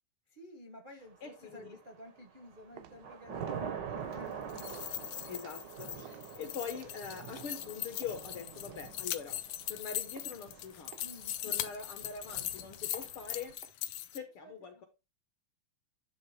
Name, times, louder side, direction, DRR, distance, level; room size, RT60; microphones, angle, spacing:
voice 1, 0.3-4.3 5.0-5.2 11.0-11.6 14.4-14.8, equal, 45° right, 0.6 m, -52 dB
voice 2, 1.2-1.7 5.2-9.4 9.7-10.9 11.4-13.5 14.1-14.8, left 6 dB, 65° left, 1.4 m, -43 dB
Thunder / Rain, 1.4-2.0 2.4-13.5, right 7 dB, 65° right, 1.0 m, -45 dB
sound 1, 2.4-7.7 8.0-9.8 10.2-10.6 10.9-13.7, right 12 dB, 85° right, 2.2 m, -56 dB
sound 2, 4.4-14.2, left 13 dB, 80° left, 1.4 m, -40 dB
10.5 x 3.6 x 4.8 m
omnidirectional pair, 3.5 m